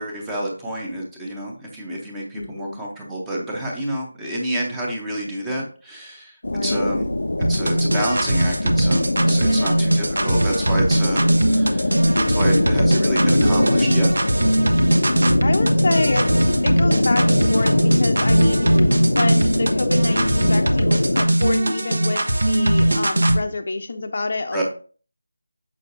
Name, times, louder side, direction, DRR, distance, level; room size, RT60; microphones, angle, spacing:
voice 1, 0.0-6.4 6.6-7.1 7.4-12.0 12.3-14.1 24.5-24.6, right 1 dB, 5° right, -3 dB, 0.7 m, -28 dB
voice 2, 2.3-2.8 6.4-6.9 9.4-9.9 15.4-16.3 16.6-18.9 19.1-24.6, left 3 dB, 35° left, 7 dB, 0.6 m, -27 dB
sound 1, 6.4-21.3, left 1 dB, 80° left, 0.6 m, -22 dB
sound 2, 7.4-23.4, right 1 dB, 70° right, 1.0 m, -20 dB
6.5 x 6.3 x 2.6 m, 0.40 s
figure-of-eight pair, 175°, 0 cm